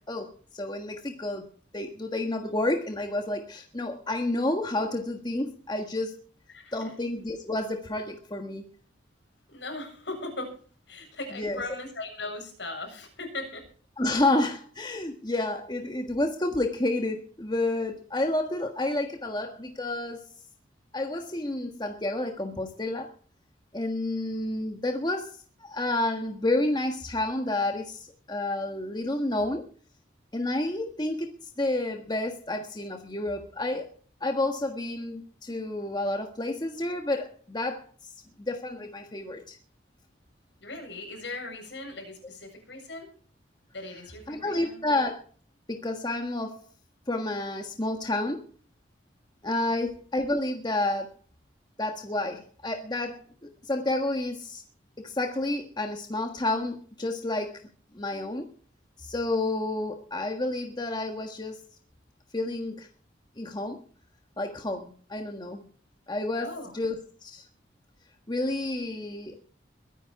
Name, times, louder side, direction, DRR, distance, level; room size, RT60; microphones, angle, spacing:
voice 1, 0.1-1.4 1.7-6.2 6.7-8.6 11.3-11.6 14.0-20.2 20.9-23.1 23.7-29.6 30.3-31.3 31.6-33.9 34.2-37.8 38.4-39.6 44.3-45.2 45.7-46.6 47.1-48.4 49.4-51.1 51.8-54.6 55.0-57.5 57.9-58.5 59.0-61.6 62.3-62.9 63.4-63.8 64.4-65.6 66.1-66.9 67.2-67.4 68.3-69.4, left 2 dB, 25° left, 4 dB, 1.5 m, -30 dB
voice 2, 6.5-6.9 9.5-10.5 10.9-13.7 40.6-43.1 43.7-44.8 49.8-49.9 66.4-66.7, left 2 dB, 70° left, 3 dB, 7.6 m, -39 dB
22.5 x 10.0 x 4.8 m, 0.42 s
head